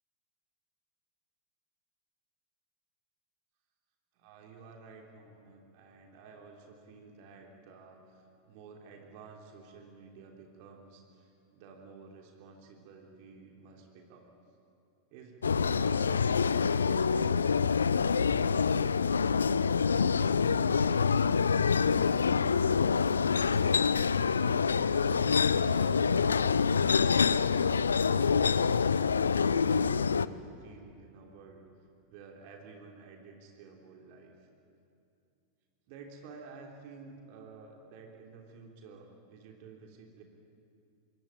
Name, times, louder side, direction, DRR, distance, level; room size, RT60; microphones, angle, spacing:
voice 1, 4.1-14.3 15.1-18.8 24.7-31.6 32.1-34.5 35.9-40.2, right 4 dB, 45° right, 1 dB, 3.4 m, -51 dB
sound 1, 15.4-30.3, left 6 dB, 70° left, 0.6 m, -26 dB
26.0 x 22.5 x 9.1 m, 2.6 s
figure-of-eight pair, 90°, 0 cm